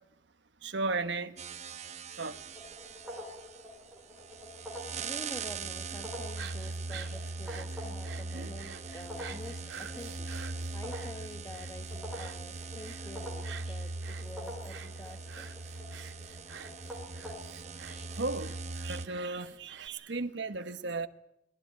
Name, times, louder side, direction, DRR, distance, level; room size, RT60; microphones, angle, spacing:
voice 1, 0.6-1.4 2.2-2.4 17.5-17.6 18.2-21.1, right 3 dB, 70° right, 1.3 m, -35 dB
sound 1, 1.4-19.1, right 3 dB, 35° right, 1.0 m, -41 dB
sound 2, 2.3-18.6, equal, 5° right, 4.6 m, -48 dB
voice 2, 5.0-10.3 10.7-15.6, left 1 dB, 15° left, 1.3 m, -48 dB
sound 3, 6.2-19.9, right 7 dB, 85° right, 2.1 m, -49 dB
22.0 x 17.0 x 9.6 m
head